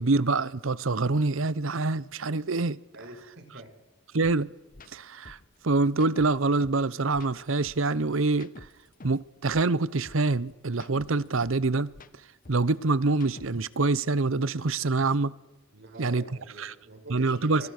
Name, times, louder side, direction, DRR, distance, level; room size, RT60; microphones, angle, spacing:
voice 1, 0.0-2.8 4.1-4.5 4.9-5.4 5.6-8.5 9.0-11.9 12.5-15.3 16.0-16.2 16.6-16.7 17.1-17.6, right 3 dB, 70° right, 0.9 m, -25 dB
voice 2, 2.9-3.7 15.7-17.7, right 2 dB, 55° right, 5.9 m, -45 dB
sound 1, 4.2-4.3 4.7-4.9 5.2-6.8 7.1-9.2 9.5-11.6 11.9-13.7, left 2 dB, 40° left, 1.1 m, -49 dB
26.0 x 24.0 x 6.6 m
head